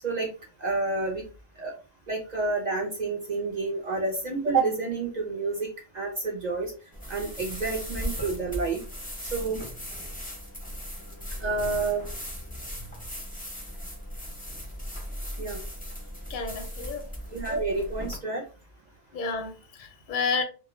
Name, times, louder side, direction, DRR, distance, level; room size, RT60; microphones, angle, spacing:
voice 1, 0.6-1.2 1.6-1.7 2.1-5.7 5.9-6.7 7.1-8.8 9.3-9.6 11.4-12.0 15.4-15.6 17.3-18.4, right 3 dB, 55° right, 0.5 m, -29 dB
sound 1, 6.9-18.2, equal, 10° left, 0.5 m, -37 dB
voice 2, 12.6-12.9 16.3-17.1 19.1-20.4, left 4 dB, 60° left, 0.6 m, -31 dB
2.1 x 2.1 x 3.0 m
omnidirectional pair, 1.2 m